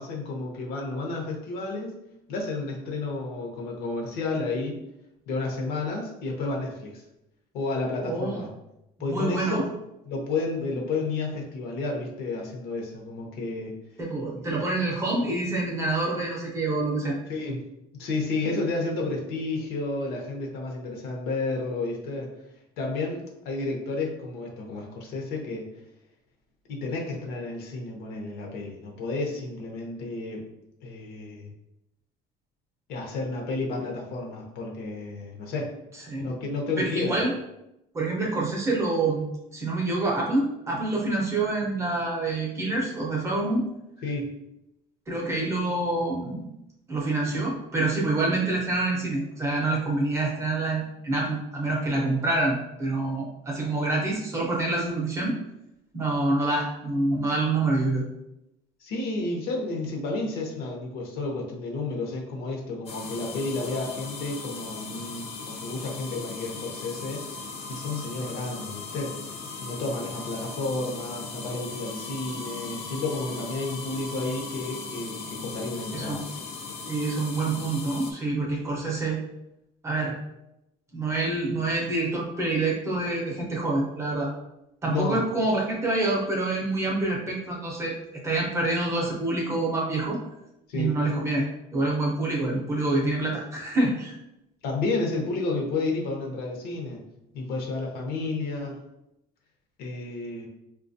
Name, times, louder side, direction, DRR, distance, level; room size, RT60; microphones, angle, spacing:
voice 1, 0.0-1.9 2.3-4.8 5.3-7.0 7.5-8.5 9.0-9.7 10.0-13.8 14.3-14.6 17.3-17.7 18.0-22.3 22.8-25.7 26.7-30.4 30.8-31.5 32.9-35.7 36.2-37.2 44.0-44.3 58.8-67.3 67.7-76.3 84.9-85.2 90.7-91.0 94.6-97.0 97.3-98.8 99.8-100.5, left 3 dB, 65° left, 0 dB, 0.8 m, -31 dB
voice 2, 8.0-8.4 9.1-9.6 14.0-17.2 36.1-36.3 36.8-37.3 37.9-39.3 39.5-43.6 45.1-46.5 46.9-55.4 55.9-58.0 75.9-76.2 76.9-79.2 79.8-80.1 80.9-84.3 84.8-88.0 88.2-90.2 90.7-91.5 91.7-94.1, right 2 dB, 15° right, -3 dB, 0.6 m, -26 dB
sound 1, 62.9-78.1, left 4 dB, 35° left, 0.4 m, -38 dB
4.3 x 2.3 x 2.6 m, 0.86 s
cardioid pair, 180°, 17 cm